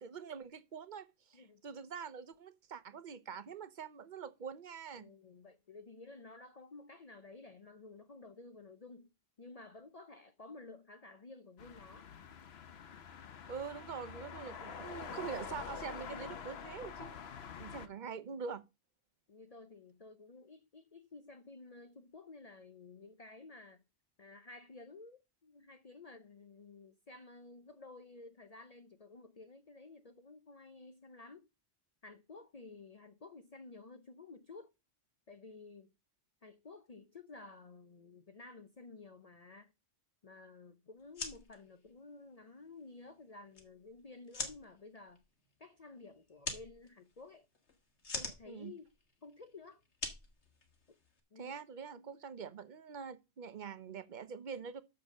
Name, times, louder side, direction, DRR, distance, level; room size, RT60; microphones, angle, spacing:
voice 1, 0.0-5.1 13.5-18.6 48.5-48.7 51.4-54.8, right 6 dB, 50° right, 0.9 m, -45 dB
voice 2, 5.0-9.1 9.4-12.1 17.7-18.0 19.3-23.8 24.2-31.5 32.0-34.7 35.3-35.9 36.4-39.7 40.2-45.2 45.6-47.5 48.1-48.9 49.2-49.8 51.3-51.5 52.0-52.2, left 3 dB, 40° left, 0.7 m, -53 dB
sound 1, 11.6-17.9, left 7 dB, 70° left, 1.1 m, -46 dB
sound 2, 41.0-51.2, left 3 dB, 90° left, 2.0 m, -46 dB
6.9 x 6.7 x 6.4 m
omnidirectional pair, 1.1 m